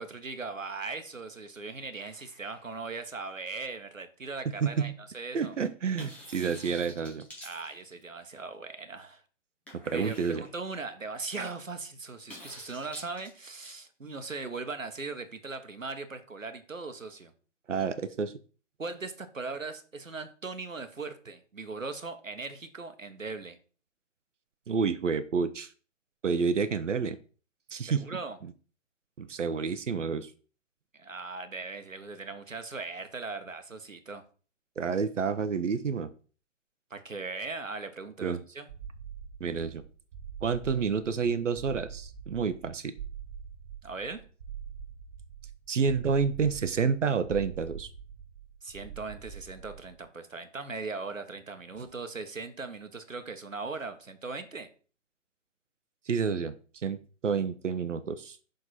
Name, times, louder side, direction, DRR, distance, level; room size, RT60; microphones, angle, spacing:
voice 1, 0.0-5.5 7.4-9.2 9.9-17.3 18.8-23.6 27.9-28.4 30.9-34.2 36.9-38.7 43.8-44.2 48.6-54.7, right 4 dB, 90° right, 8 dB, 1.1 m, -39 dB
sound 1, 2.0-3.7 6.0-8.2 9.7-10.7 12.3-13.7, left 1 dB, 5° left, 0.7 m, -49 dB
voice 2, 4.6-5.0 5.3-7.3 9.9-10.4 17.7-18.3 24.7-25.7 26.2-27.2 27.7-28.0 29.2-30.3 34.8-36.1 38.2-38.4 39.4-39.8 40.4-42.9 45.7-47.9 56.1-56.5 56.8-57.0 57.2-58.4, right 5 dB, 70° right, 11 dB, 0.8 m, -29 dB
sound 2, 38.7-50.0, right 7 dB, 35° right, 1.1 m, -44 dB
6.5 x 3.8 x 4.2 m, 0.38 s
figure-of-eight pair, 135°, 38 cm